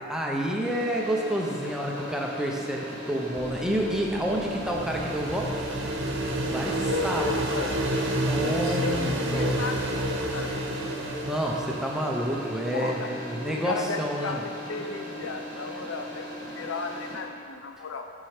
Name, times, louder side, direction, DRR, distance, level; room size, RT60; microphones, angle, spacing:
voice 1, 0.0-5.6 6.3-7.2 8.2-9.6 11.2-14.4, equal, 5° right, -1 dB, 0.7 m, -29 dB
sound 1, 0.6-17.2, equal, 65° left, 1.8 m, -39 dB
sound 2, 3.3-10.6, right 2 dB, 30° right, 0.4 m, -43 dB
sound 3, 4.0-12.6, right 1 dB, 65° right, 0.9 m, -30 dB
voice 2, 6.9-7.9 8.4-10.9 12.7-18.0, left 4 dB, 85° left, 5 dB, 0.6 m, -34 dB
7.5 x 5.7 x 5.0 m, 2.3 s
head